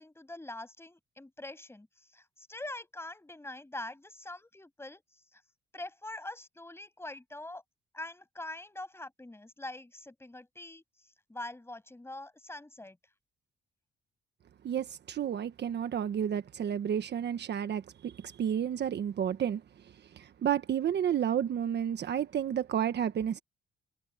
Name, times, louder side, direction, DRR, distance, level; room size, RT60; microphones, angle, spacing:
voice 1, 0.0-1.9 2.1-5.0 5.3-5.4 5.7-7.6 7.9-10.8 11.3-13.0, left 2 dB, 10° left, 6.9 m, -44 dB
voice 2, 14.6-19.6 20.2-23.4, right 9 dB, 60° right, 1.4 m, -31 dB
cardioid pair, 90°, 20 cm